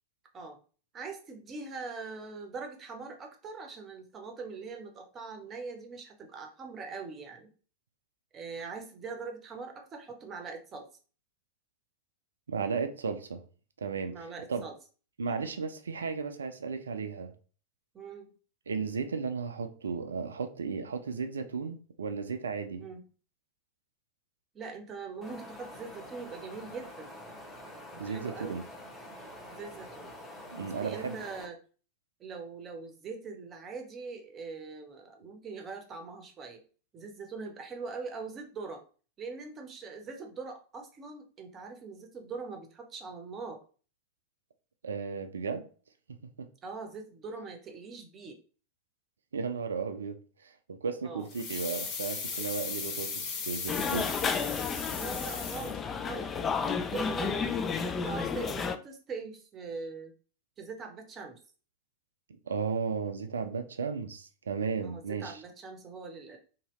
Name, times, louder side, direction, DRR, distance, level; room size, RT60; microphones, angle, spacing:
voice 1, 0.9-7.5 8.3-10.9 14.1-14.7 15.3-15.4 17.9-18.3 22.8-23.0 24.5-27.1 27.9-28.6 29.5-30.1 30.6-31.6 32.2-36.6 36.9-38.8 39.2-43.6 46.6-48.4 51.0-51.3 54.9-60.1 60.6-61.4 64.8-66.4, right 4 dB, 25° right, 0.7 m, -42 dB
voice 2, 12.5-13.4 13.8-14.2 14.5-14.6 15.2-17.3 18.7-22.9 28.0-28.6 30.5-31.2 44.8-45.6 49.3-50.2 50.4-54.1 62.3-65.4, right 5 dB, 70° right, 0.4 m, -34 dB
Wind, 25.2-31.4, left 1 dB, ahead, 0.9 m, -46 dB
sound 1, 51.3-56.1 56.4-56.5, left 5 dB, 35° left, 0.8 m, -37 dB
sound 2, 53.7-58.8, left 6 dB, 20° left, 0.3 m, -32 dB
2.8 x 2.7 x 3.0 m
figure-of-eight pair, 90°, 0 cm